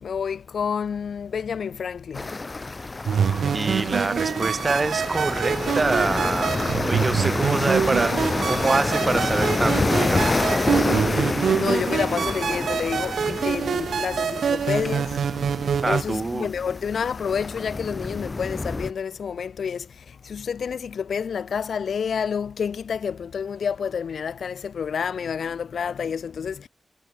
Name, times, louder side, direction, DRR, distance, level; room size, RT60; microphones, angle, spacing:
voice 1, 0.0-2.3 11.6-15.2 15.9-26.7, left 7 dB, 80° left, 0.4 m, -29 dB
sound 1, 2.1-18.9, left 3 dB, 30° left, 0.8 m, -28 dB
sound 2, 3.0-16.0, right 7 dB, 90° right, 0.5 m, -25 dB
voice 2, 3.5-8.2 8.5-10.4 10.8-11.0 15.8-16.5, right 3 dB, 30° right, 0.4 m, -26 dB
wide cardioid pair, 120°, 0 cm